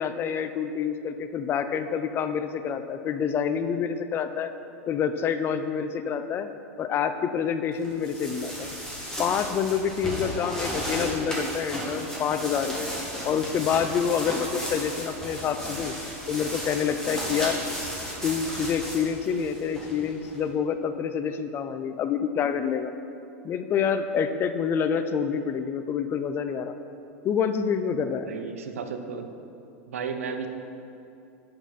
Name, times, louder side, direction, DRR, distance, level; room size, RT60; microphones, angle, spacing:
voice 1, 0.0-4.5 4.9-6.5 6.8-8.7 9.2-12.9 13.2-15.9 16.3-17.6 18.2-22.9 23.4-26.7 27.2-28.3, left 7 dB, 30° left, 9 dB, 0.5 m, -27 dB
sound 1, 7.8-20.4, equal, 10° left, 1.8 m, -34 dB
voice 2, 28.2-29.3 29.9-30.5, right 6 dB, 90° right, 6 dB, 0.7 m, -33 dB
7.2 x 6.0 x 5.6 m, 2.7 s
hypercardioid pair, 115°, 7 cm